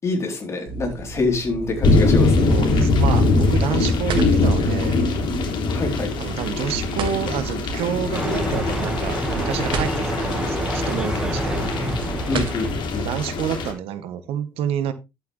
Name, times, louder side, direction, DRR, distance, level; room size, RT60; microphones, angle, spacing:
voice 1, 0.0-2.5 5.7-6.1 12.3-12.7 12.9-13.0, left 3 dB, 30° left, 3.7 m, -25 dB
sound 1, 0.6-12.9, right 4 dB, 60° right, 2.2 m, -34 dB
sound 2, 1.8-13.7, left 3 dB, 55° left, 3.4 m, -22 dB
voice 2, 2.5-5.0 6.2-11.6 13.0-14.9, right 9 dB, 80° right, 1.5 m, -28 dB
sound 3, 8.1-13.0, right 1 dB, 10° right, 1.8 m, -27 dB
11.5 x 8.0 x 3.3 m
cardioid pair, 150°, 10 cm